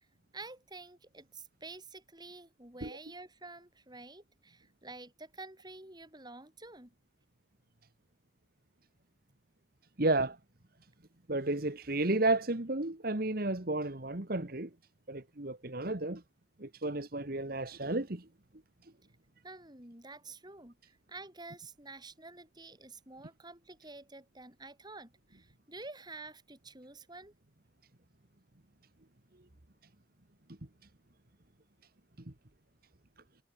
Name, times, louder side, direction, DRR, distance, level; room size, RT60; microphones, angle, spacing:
voice 1, 0.3-6.9 19.4-27.3, right 3 dB, 25° right, 7.6 m, -49 dB
voice 2, 10.0-10.4 11.3-14.7 15.1-16.2 16.6-18.2, right 2 dB, 55° right, 1.8 m, -32 dB
head